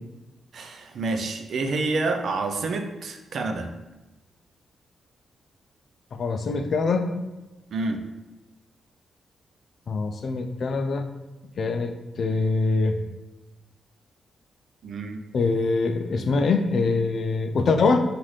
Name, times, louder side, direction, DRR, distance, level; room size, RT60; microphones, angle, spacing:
voice 1, 0.5-3.7 7.7-8.0 14.8-15.2, right 3 dB, 65° right, 4 dB, 0.5 m, -28 dB
voice 2, 6.1-7.2 9.9-11.0 11.6-13.0 15.3-18.0, left 3 dB, 55° left, 7 dB, 0.4 m, -24 dB
5.6 x 2.5 x 3.2 m, 1.1 s
cardioid pair, 120°, 0 cm